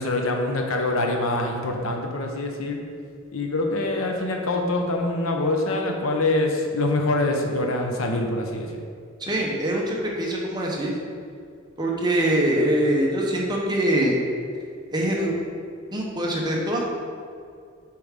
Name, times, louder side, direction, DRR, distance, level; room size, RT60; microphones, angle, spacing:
voice 1, 0.0-2.8 3.3-8.8, left 2 dB, 80° left, 2 dB, 0.9 m, -25 dB
voice 2, 9.2-10.9 11.8-14.1 14.9-15.4 15.9-16.9, right 1 dB, 20° right, -2 dB, 1.0 m, -23 dB
7.6 x 4.7 x 3.7 m, 2.3 s
head